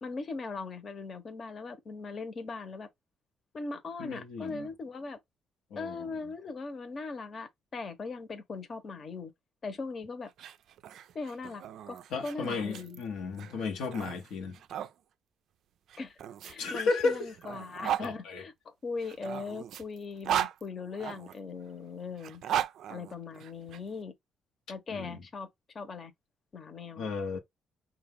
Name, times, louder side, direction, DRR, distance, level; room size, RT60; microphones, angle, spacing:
voice 1, 0.0-2.9 3.5-5.2 5.8-9.3 9.6-10.3 11.1-13.0 13.3-13.6 16.0-22.4 22.9-24.1 24.7-25.5 25.7-26.1 26.5-27.1, left 4 dB, 45° left, 0.9 m, -40 dB
voice 2, 4.0-4.7 5.7-6.1 12.1-14.6 16.6-17.3 18.0-18.4 24.9-25.2 27.0-27.4, left 4 dB, 90° left, 0.9 m, -33 dB
sound 1, 10.3-14.9 15.9-18.1 19.0-21.4 22.2-23.8, right 11 dB, 75° right, 0.3 m, -36 dB
5.5 x 2.4 x 3.4 m
cardioid pair, 90°, 0 cm